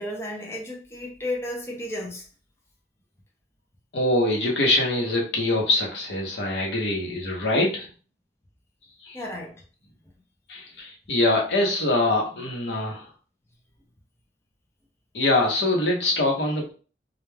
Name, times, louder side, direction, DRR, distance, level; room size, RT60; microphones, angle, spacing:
voice 1, 0.0-2.2 9.1-9.6, left 1 dB, 15° left, 0.4 m, -33 dB
voice 2, 3.9-7.9 9.0-9.2 10.5-13.1 15.1-16.7, left 2 dB, 80° left, 0.8 m, -24 dB
2.2 x 2.2 x 3.2 m
head